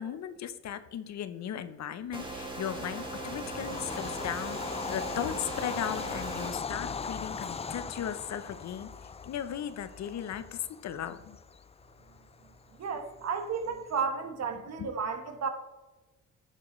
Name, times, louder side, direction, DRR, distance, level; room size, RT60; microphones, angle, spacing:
voice 1, 0.0-11.4 14.6-14.9, left 9 dB, 65° left, 12 dB, 0.8 m, -37 dB
sound 1, 2.1-6.5, right 2 dB, 15° right, 2.3 m, -39 dB
Bird vocalization bird call bird song / Train, 2.7-13.9, left 5 dB, 20° left, 0.4 m, -40 dB
voice 2, 12.8-15.5, right 5 dB, 60° right, 7 dB, 1.3 m, -33 dB
11.0 x 7.5 x 3.2 m, 1.1 s
cardioid pair, 90°, 30 cm